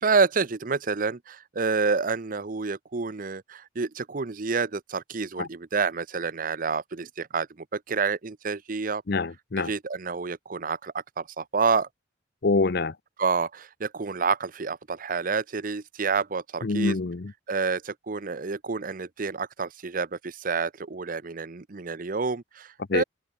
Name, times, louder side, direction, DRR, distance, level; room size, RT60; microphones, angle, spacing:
voice 1, 0.0-7.5 7.7-9.0 9.6-11.9 13.2-17.0 17.5-23.0, right 4 dB, 45° right, 0.7 m, -28 dB
voice 2, 9.1-9.7 12.4-12.9 16.6-17.3 22.9-23.0, left 3 dB, 55° left, 0.7 m, -25 dB
head